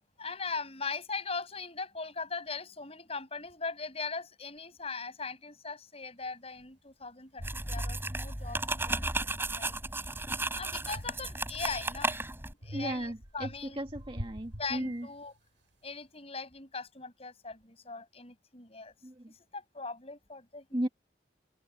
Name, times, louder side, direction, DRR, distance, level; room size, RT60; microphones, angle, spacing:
voice 1, 0.2-9.0 9.6-9.8 10.0-10.1 10.5-12.2 12.6-13.8 14.6-15.3 15.8-18.9 19.3-20.9, left 4 dB, 30° left, 7.6 m, -40 dB
sound 1, 6.6-6.7 7.4-9.2 9.7-12.0 12.6-15.4, equal, 85° right, 7.3 m, -47 dB
sound 2, 7.4-12.5, right 2 dB, 10° right, 7.8 m, -34 dB
voice 2, 12.7-15.1 19.0-19.3 20.7-20.9, right 1 dB, 25° right, 1.9 m, -35 dB
head